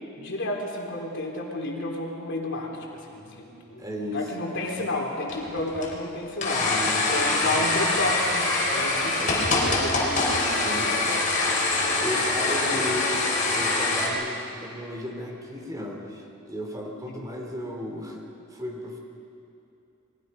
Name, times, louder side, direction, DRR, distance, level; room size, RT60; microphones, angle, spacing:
voice 1, 0.2-6.7 7.1-9.3 9.6-10.5 10.7-11.1 12.2-12.9 17.1-17.2, left 2 dB, 55° left, 0 dB, 3.6 m, -32 dB
voice 2, 3.8-4.3 4.5-4.9 6.6-7.7 9.2-9.6 10.6-10.9 12.0-13.2 13.5-18.2 18.5-19.0, left 1 dB, 15° right, 1 dB, 3.0 m, -35 dB
sound 1, 5.3-14.1, left 2 dB, 35° left, 4.5 m, -24 dB
30.0 x 22.5 x 5.4 m, 2.7 s
head